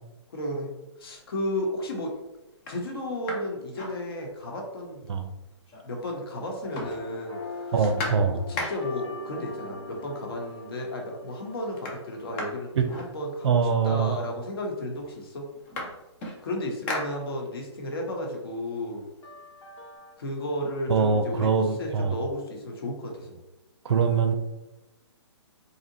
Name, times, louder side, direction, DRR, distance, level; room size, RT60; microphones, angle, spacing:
voice 1, 0.3-0.7 1.0-2.1 2.7-5.0 5.8-7.9 8.5-15.5 16.4-19.0 20.2-23.4, left 1 dB, 55° left, 1 dB, 1.0 m, -33 dB
sound 1, 1.1-1.6 2.1-2.2 2.5-4.6 4.9-5.0 5.3-6.1 6.4-9.1 10.1-10.2 10.5-11.0 11.3-13.7 14.5-14.6 14.9-17.7 18.1-19.9, left 2 dB, 10° left, 0.3 m, -38 dB
sound 2, 6.6-13.8 19.2-20.2, left 3 dB, 90° left, 1.4 m, -43 dB
voice 2, 7.7-8.4 12.7-12.8 13.4-14.2 20.9-22.1 23.8-24.3, right 5 dB, 65° right, 6 dB, 0.6 m, -23 dB
4.1 x 2.8 x 2.7 m, 0.99 s
hypercardioid pair, 165°, 15 cm